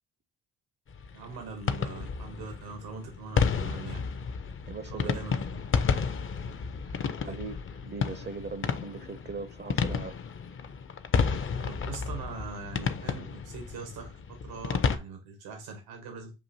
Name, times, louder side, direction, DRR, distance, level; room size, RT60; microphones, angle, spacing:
sound 1, 0.9-15.0, left 5 dB, 35° left, 0.5 m, -31 dB
voice 1, 1.1-4.3 4.9-5.6 7.2-7.4 11.5-16.3, right 4 dB, 85° right, 1.0 m, -42 dB
voice 2, 4.7-5.2 6.8-10.2, right 4 dB, 30° right, 0.5 m, -40 dB
7.2 x 2.5 x 2.7 m
hypercardioid pair, 45°, 37 cm